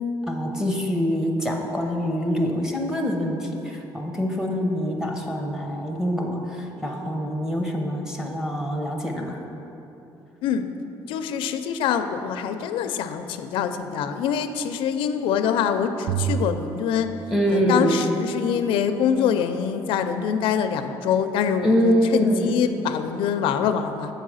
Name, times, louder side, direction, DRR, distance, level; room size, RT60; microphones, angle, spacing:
voice 1, 0.3-9.4 17.3-18.0 21.6-22.6, equal, 5° right, 0 dB, 0.7 m, -24 dB
voice 2, 11.1-17.1 17.5-24.1, left 7 dB, 80° left, 8 dB, 0.4 m, -24 dB
sound 1, 16.1-17.9, right 8 dB, 45° right, 0.4 m, -29 dB
8.0 x 4.7 x 6.3 m, 3.0 s
cardioid pair, 160°, 9 cm